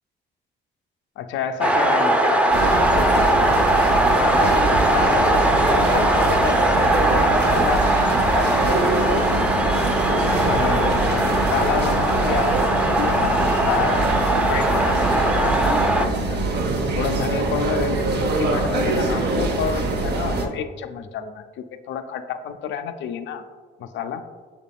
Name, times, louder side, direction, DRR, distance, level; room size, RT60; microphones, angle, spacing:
voice 1, 1.2-3.6 4.2-9.8 10.4-15.5 15.8-16.4 16.9-23.5 23.8-24.2, left 8 dB, 70° left, 9 dB, 0.4 m, -30 dB
sound 1, 1.6-16.1, right 1 dB, 5° right, 0.4 m, -20 dB
sound 2, 2.5-20.5, right 2 dB, 55° right, 0.6 m, -24 dB
6.4 x 3.6 x 2.2 m, 1.5 s
cardioid pair, 90°, 20 cm